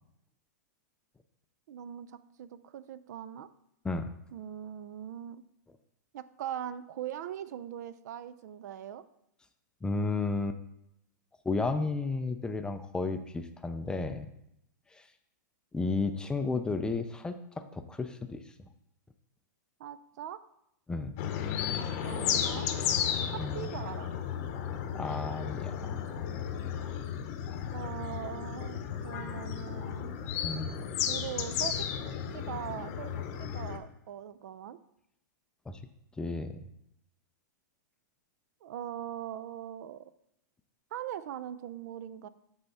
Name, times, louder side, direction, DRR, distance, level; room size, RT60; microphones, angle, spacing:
voice 1, 1.7-3.5 4.3-5.4 6.1-9.0 19.8-20.4 21.7-22.7 23.3-24.1 27.7-30.1 31.0-31.9 32.3-33.1 33.4-34.8 38.6-40.0 40.9-42.3, right 10 dB, 65° right, 14 dB, 0.4 m, -41 dB
voice 2, 9.8-10.6 11.5-14.3 14.9-15.0 15.7-18.4 20.9-21.2 23.4-23.7 24.9-25.9 30.4-30.8 35.7-35.8 36.2-36.6, left 3 dB, 10° left, 8 dB, 0.4 m, -33 dB
sound 1, 21.2-33.8, left 9 dB, 45° left, 0.8 m, -34 dB
7.8 x 3.5 x 5.6 m, 0.79 s
hypercardioid pair, 135°, 10 cm